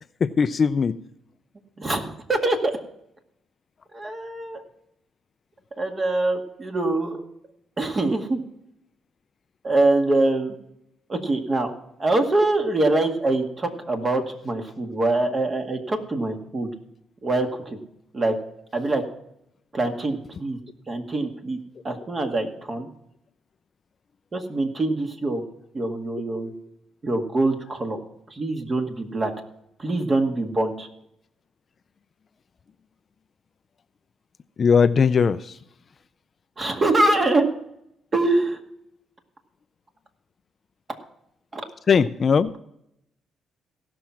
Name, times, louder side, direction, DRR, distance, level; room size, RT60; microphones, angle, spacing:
voice 1, 0.2-0.9 34.6-35.4 41.9-42.5, left 6 dB, 45° left, 13 dB, 0.5 m, -19 dB
voice 2, 1.8-2.7 3.9-4.6 5.8-7.2 7.8-8.4 9.6-10.5 11.1-11.7 12.0-16.7 17.2-17.8 18.1-18.3 18.7-19.0 19.7-20.6 20.9-21.6 21.8-22.9 24.3-25.4 25.7-26.5 27.0-28.0 28.3-29.3 29.8-30.9 36.6-37.5 38.1-38.6 41.5-41.6, right 2 dB, 35° right, 4 dB, 1.9 m, -24 dB
16.5 x 6.1 x 5.8 m, 0.77 s
cardioid pair, 90°, 0 cm